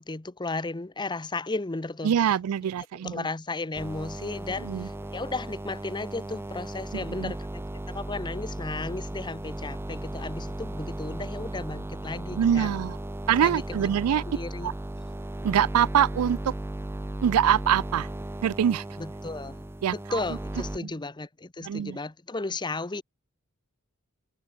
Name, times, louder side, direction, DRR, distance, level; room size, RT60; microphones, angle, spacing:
voice 1, 0.0-2.2 3.0-12.7 13.4-14.0 14.3-14.7 19.0-19.6 19.9-23.0, left 3 dB, 20° left, 0.8 m, -34 dB
voice 2, 2.0-3.3 4.6-4.9 7.1-7.3 12.3-13.0 13.3-14.2 14.6-14.7 15.4-16.5 17.2-18.1 18.4-18.8 19.8-20.2 20.8-20.9 21.6-22.0, right 9 dB, 75° right, 0.3 m, -24 dB
sound 1, 3.7-20.8, right 1 dB, 10° right, 0.4 m, -36 dB
head